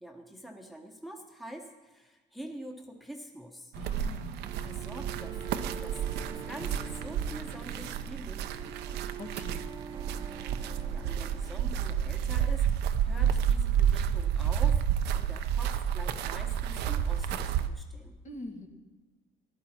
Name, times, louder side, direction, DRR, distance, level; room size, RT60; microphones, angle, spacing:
voice 1, 0.0-3.7 4.6-9.1 10.7-18.2, equal, ahead, 2 dB, 1.1 m, -46 dB
voice 2, 3.7-4.4 9.2-9.7 18.2-18.7, left 2 dB, 45° left, 3 dB, 1.9 m, -43 dB
sound 1, 3.7-17.7, right 9 dB, 80° right, 0.7 m, -30 dB
sound 2, 4.4-12.4, right 6 dB, 25° right, 0.6 m, -45 dB
14.5 x 11.5 x 4.4 m, 1.2 s
cardioid pair, 110°, 17 cm